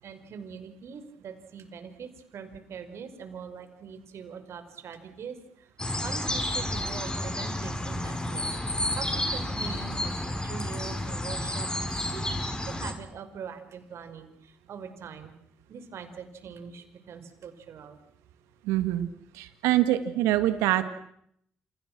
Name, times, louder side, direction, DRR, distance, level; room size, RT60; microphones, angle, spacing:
voice 1, 0.0-5.7 6.0-15.3 15.7-18.0, right 6 dB, 65° right, 8 dB, 5.5 m, -43 dB
sound 1, 5.8-12.9, left 1 dB, 20° left, 7.5 m, -31 dB
voice 2, 18.7-19.1 19.3-20.8, right 14 dB, 85° right, 11 dB, 2.0 m, -24 dB
29.5 x 29.5 x 6.2 m, 0.71 s
hypercardioid pair, 45°, 5 cm